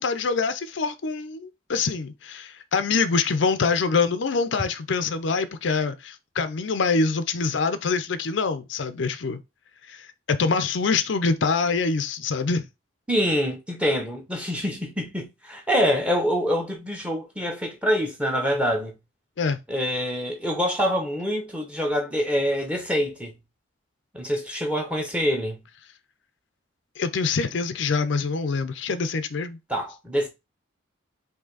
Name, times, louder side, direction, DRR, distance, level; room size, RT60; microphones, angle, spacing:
voice 1, 0.0-9.4 9.9-12.7 19.4-19.6 27.0-29.6, left 4 dB, 65° left, 0.5 m, -25 dB
voice 2, 13.1-19.0 19.7-23.3 24.1-25.6 29.7-30.3, equal, 5° right, 0.9 m, -25 dB
4.9 x 2.7 x 3.9 m
head